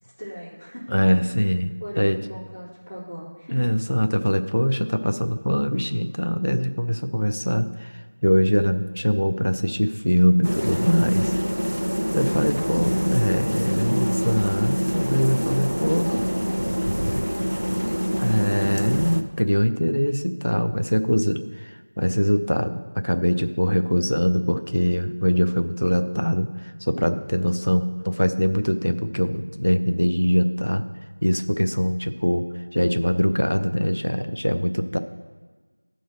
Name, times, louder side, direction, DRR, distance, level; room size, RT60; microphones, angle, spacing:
voice 1, 0.0-0.9 1.8-3.7 12.4-14.1 15.8-18.5, equal, 10° left, -17 dB, 2.2 m, -39 dB
voice 2, 0.9-1.7 2.0-2.2 3.5-7.9 8.2-11.3 12.1-16.1 18.2-30.9 31.2-32.5 32.7-35.0, equal, 35° left, 8 dB, 0.4 m, -22 dB
sound 1, 10.4-19.2, equal, 65° right, 0.6 m, -25 dB
11.5 x 3.9 x 6.4 m, 1.4 s
figure-of-eight pair, 180°, 0 cm